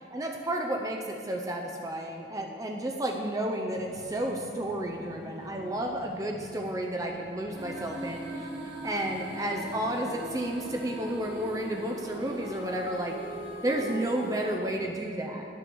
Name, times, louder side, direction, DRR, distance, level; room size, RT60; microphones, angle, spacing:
voice 1, 0.1-8.5 8.8-13.2 13.6-15.4, right 1 dB, 20° right, 2 dB, 0.6 m, -32 dB
sound 1, 3.7-15.0, equal, 75° left, 1.6 m, -51 dB
sound 2, 7.5-14.5, right 1 dB, 80° right, 2.5 m, -40 dB
11.0 x 6.9 x 6.0 m, 2.5 s
head